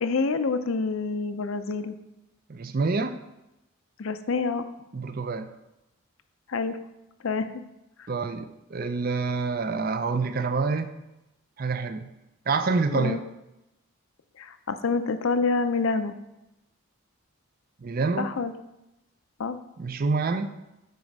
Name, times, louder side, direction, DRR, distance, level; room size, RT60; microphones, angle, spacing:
voice 1, 0.0-1.9 4.0-4.7 6.5-6.8 7.2-7.5 12.9-13.2 14.4-16.2 18.2-18.5 19.4-19.6, left 4 dB, 70° left, 11 dB, 0.5 m, -27 dB
voice 2, 2.5-3.2 4.9-5.5 8.1-10.9 11.6-12.1 12.5-13.2 17.8-18.4 19.8-20.6, right 4 dB, 40° right, 10 dB, 0.4 m, -27 dB
9.2 x 4.9 x 5.4 m, 0.95 s
head